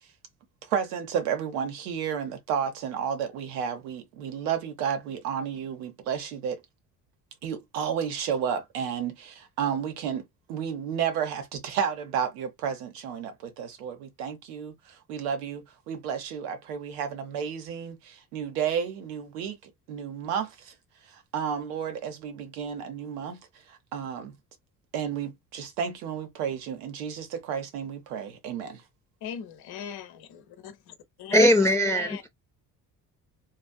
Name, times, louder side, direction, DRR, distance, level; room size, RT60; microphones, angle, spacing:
voice 1, 0.7-6.6 7.4-19.6 19.9-20.7 21.1-23.4 23.7-24.4 24.9-28.8, right 7 dB, 85° right, 1.0 m, -32 dB
voice 2, 29.2-31.6 31.9-32.2, left 8 dB, 55° left, 0.9 m, -40 dB
voice 3, 31.3-32.3, left 1 dB, 5° left, 0.3 m, -20 dB
3.0 x 2.5 x 2.2 m
hypercardioid pair, 65°, 45 cm